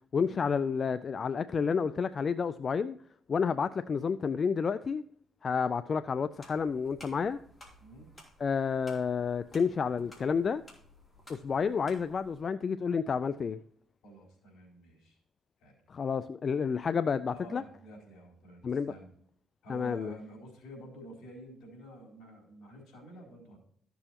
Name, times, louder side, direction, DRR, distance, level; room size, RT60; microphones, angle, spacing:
voice 1, 0.1-3.0 3.3-5.0 5.4-7.4 8.4-10.6 11.3-13.6 15.9-17.6 18.6-18.9 19.7-20.1, left 6 dB, 45° left, 0.3 m, -30 dB
sound 1, 6.4-12.4, left 1 dB, 25° left, 3.0 m, -56 dB
voice 2, 7.8-8.1 14.0-15.2 15.6-15.8 17.3-19.1 19.6-23.6, right 1 dB, 80° left, 4.2 m, -50 dB
13.5 x 6.9 x 2.9 m
cardioid pair, 90°, 0 cm